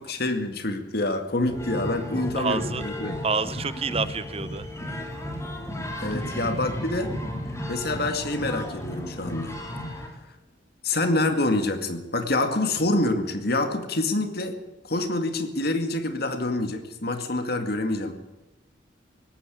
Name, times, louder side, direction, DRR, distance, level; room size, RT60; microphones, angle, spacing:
voice 1, 0.0-3.2 6.0-7.1 7.7-9.6 10.8-14.6 14.8-18.1, left 2 dB, 55° left, 7 dB, 2.2 m, -26 dB
sound 1, 1.4-10.1, left 1 dB, 15° left, 3.5 m, -34 dB
voice 2, 2.4-2.9 3.2-4.7, right 4 dB, 35° right, 14 dB, 0.7 m, -28 dB
18.5 x 15.5 x 9.2 m, 1.0 s
head